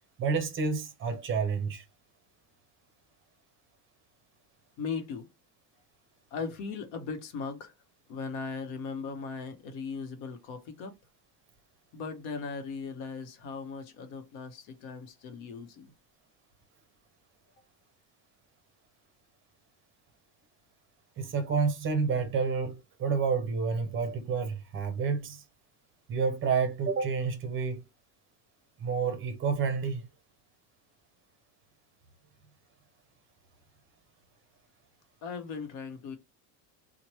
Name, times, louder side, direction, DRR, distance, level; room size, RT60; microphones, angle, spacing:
voice 1, 0.2-1.8 21.2-25.4 26.1-27.8 28.8-30.0, right 5 dB, 30° right, 0.5 m, -29 dB
voice 2, 4.8-5.3 6.3-7.7 8.1-10.9 11.9-15.9 35.2-36.2, left 5 dB, 75° left, 0.9 m, -38 dB
2.9 x 2.1 x 3.0 m
cardioid pair, 145°, 46 cm